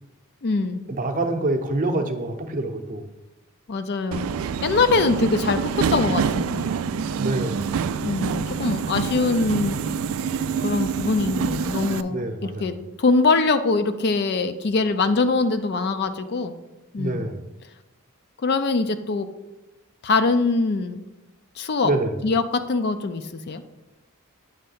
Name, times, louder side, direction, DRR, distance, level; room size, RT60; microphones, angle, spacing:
voice 1, 0.4-0.8 3.7-4.3 4.6-6.7 8.0-9.8 10.6-16.6 16.9-17.3 18.4-19.3 20.0-21.0 21.6-21.9 22.2-23.6, left 3 dB, 50° left, 10 dB, 0.4 m, -23 dB
voice 2, 1.0-3.1 7.2-7.7 12.1-12.8 17.0-17.5 21.8-22.1, right 2 dB, 40° right, 4 dB, 0.7 m, -26 dB
Subway metro underground, 4.1-12.0, right 6 dB, 70° right, 0.3 m, -26 dB
8.8 x 3.3 x 5.5 m, 1.0 s
head